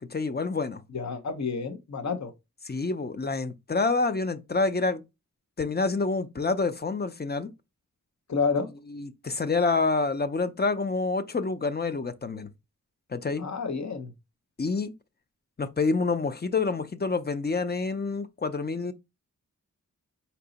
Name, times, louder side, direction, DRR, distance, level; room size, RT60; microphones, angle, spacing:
voice 1, 0.0-0.8 2.6-5.0 5.6-7.5 8.9-12.5 13.1-13.5 14.6-14.9 15.6-18.9, left 3 dB, 30° left, 0.5 m, -27 dB
voice 2, 0.9-2.3 8.3-8.7 13.4-14.1, left 5 dB, 60° left, 0.9 m, -29 dB
4.6 x 2.8 x 4.0 m
wide cardioid pair, 80°, 31 cm